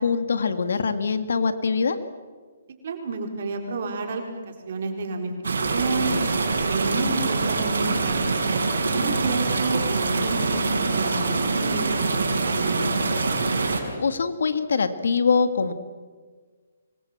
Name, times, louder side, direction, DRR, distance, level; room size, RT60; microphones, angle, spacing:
voice 1, 0.0-2.0 13.7-15.7, left 5 dB, 75° left, 10 dB, 2.1 m, -23 dB
voice 2, 2.8-6.1 6.7-8.2 8.9-13.0, right 3 dB, 55° right, 3 dB, 4.4 m, -30 dB
sound 1, 5.4-13.8, right 3 dB, 85° right, 5.6 m, -24 dB
25.5 x 23.5 x 7.5 m, 1.5 s
hypercardioid pair, 155°, 0 cm